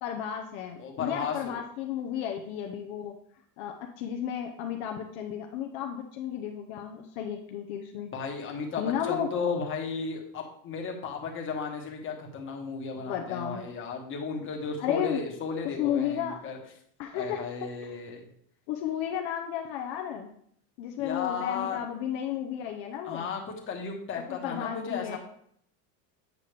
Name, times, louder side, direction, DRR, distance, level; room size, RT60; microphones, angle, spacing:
voice 1, 0.0-3.1 3.6-8.1 8.8-9.3 12.9-13.7 14.8-15.2 15.8-16.4 17.0-17.4 17.8-17.9 18.7-20.3 20.8-23.3 24.2-25.2, left 9 dB, 60° left, 3 dB, 0.8 m, -33 dB
voice 2, 0.8-1.6 8.1-16.6 17.1-18.2 21.0-21.8 23.0-23.4 23.7-25.2, left 5 dB, 30° left, 1 dB, 1.3 m, -34 dB
8.4 x 5.4 x 3.3 m, 0.66 s
cardioid pair, 155°, 43 cm